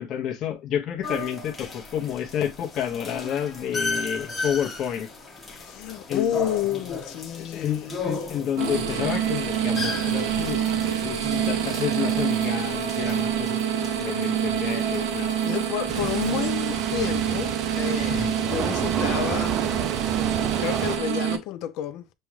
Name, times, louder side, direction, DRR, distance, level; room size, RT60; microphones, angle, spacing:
voice 1, 0.0-5.1 6.1-6.4 7.4-10.7 11.0-15.3 18.1-18.3, left 9 dB, 40° left, 1.0 m, -30 dB
sound 1, 1.0-16.4, left 3 dB, 15° left, 1.5 m, -36 dB
voice 2, 5.6-8.0 15.4-19.6 20.6-22.1, left 11 dB, 60° left, 0.5 m, -30 dB
sound 2, 8.6-21.4, right 9 dB, 80° right, 0.9 m, -26 dB
sound 3, 15.9-21.0, right 8 dB, 35° right, 0.4 m, -30 dB
6.7 x 2.4 x 3.2 m
cardioid pair, 150°, 0 cm